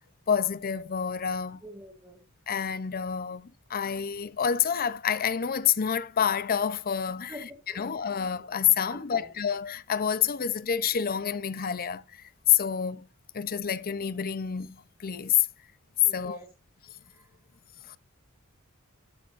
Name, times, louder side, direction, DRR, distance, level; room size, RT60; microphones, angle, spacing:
voice 1, 0.3-1.6 2.5-13.1 13.3-15.5 16.1-16.4 17.8-18.0, left 8 dB, 45° left, 0.6 m, -28 dB
voice 2, 1.6-2.2 7.3-7.4 7.7-7.9 8.9-9.3 16.0-16.5 17.1-17.3, equal, 10° right, 2.3 m, -46 dB
13.5 x 7.0 x 2.5 m
head